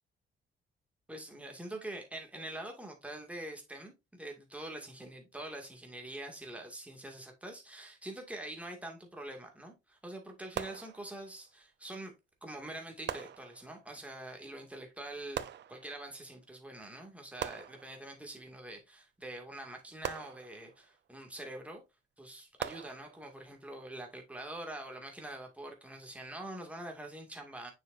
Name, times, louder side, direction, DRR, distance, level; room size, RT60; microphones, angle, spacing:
voice 1, 1.1-12.1 12.4-21.8 22.2-27.7, right 1 dB, 5° right, 2.2 m, -45 dB
sound 1, 10.5-11.5 13.1-13.9 15.3-16.2 17.4-18.3 20.0-20.9 22.6-23.5, right 10 dB, 60° right, 0.7 m, -42 dB
6.6 x 6.5 x 2.6 m
cardioid pair, 90°, 20 cm